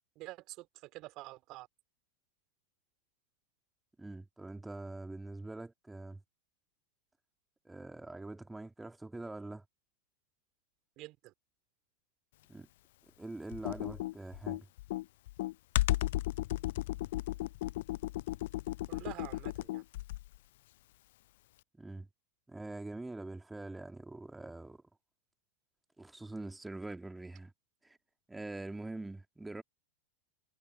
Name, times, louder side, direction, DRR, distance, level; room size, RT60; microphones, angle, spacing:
voice 1, 0.2-1.7 11.0-11.3 18.9-19.8, right 19 dB, 40° right, 3.2 m, -47 dB
voice 2, 4.0-6.2 7.6-9.6 12.5-12.7 13.2-14.7 21.8-22.1 22.5-24.8 26.0-27.5 27.8-28.0 28.3-29.6, right 2 dB, 5° right, 2.6 m, -44 dB
Computer keyboard, 13.5-20.4, left 17 dB, 55° left, 0.6 m, -34 dB
figure-of-eight pair, 90°, 0 cm